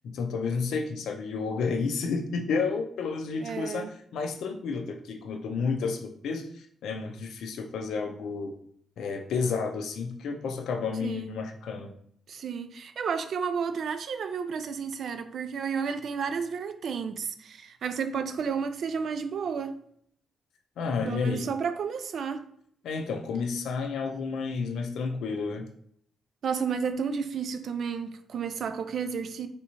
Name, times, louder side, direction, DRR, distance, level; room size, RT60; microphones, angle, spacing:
voice 1, 0.1-8.6 9.0-11.9 20.8-21.5 22.8-25.7, left 5 dB, 80° left, 0.4 m, -31 dB
voice 2, 3.4-3.9 11.0-11.3 12.3-19.8 21.0-22.4 26.4-29.5, right 6 dB, 65° right, 0.3 m, -32 dB
3.4 x 2.7 x 2.9 m
cardioid pair, 90°, 0 cm